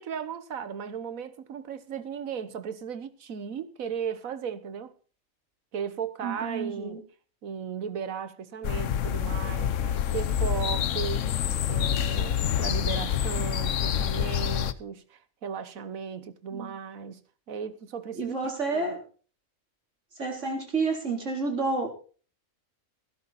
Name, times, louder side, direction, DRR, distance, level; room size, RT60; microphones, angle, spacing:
voice 1, 0.0-4.9 5.7-7.0 7.4-11.3 11.7-17.2 17.5-18.9, right 7 dB, 90° right, 1.5 m, -36 dB
voice 2, 6.2-7.0 16.5-16.8 18.1-19.0 20.2-21.9, right 3 dB, 60° right, 4.2 m, -30 dB
sound 1, 8.6-14.7, left 9 dB, 70° left, 1.1 m, -27 dB
16.5 x 11.0 x 4.2 m
omnidirectional pair, 1.4 m